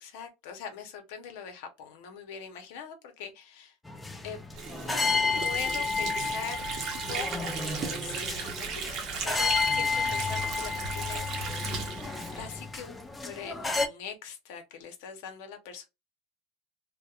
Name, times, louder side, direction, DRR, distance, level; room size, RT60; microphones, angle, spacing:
voice 1, 0.0-3.8 4.2-4.4 4.8-5.0 5.4-6.6 7.0-11.8 12.3-15.8, left 6 dB, 70° left, 0.7 m, -42 dB
sound 1, 3.8-13.9, left 4 dB, 10° left, 0.4 m, -31 dB
Water / Sink (filling or washing), 4.5-13.1, right 5 dB, 45° right, 0.7 m, -37 dB
2.7 x 2.1 x 2.3 m
supercardioid pair, 125°, 0 cm